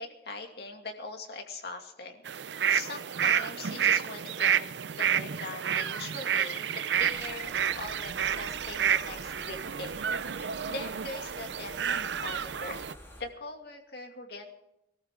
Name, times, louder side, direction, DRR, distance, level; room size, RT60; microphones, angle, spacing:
voice 1, 0.0-2.3 2.7-4.6 4.9-10.1 10.4-12.8 13.2-14.5, left 3 dB, 60° left, 3 dB, 2.4 m, -41 dB
sound 1, 2.3-12.9, right 8 dB, 75° right, 0.5 m, -30 dB
sound 2, 7.0-13.2, left 1 dB, 15° left, 3.4 m, -50 dB
23.0 x 14.0 x 3.7 m, 0.84 s
head